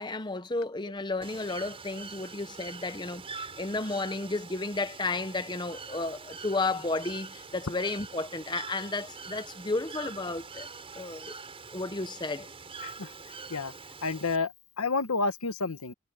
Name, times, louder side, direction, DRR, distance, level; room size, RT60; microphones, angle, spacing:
voice 1, 0.0-10.7 10.9-11.3 11.7-12.5, left 3 dB, 20° left, 0.8 m, -33 dB
Bird / Water, 1.2-14.4, right 4 dB, 25° right, 6.6 m, -44 dB
voice 2, 14.0-15.9, left 3 dB, 80° left, 1.4 m, -30 dB
head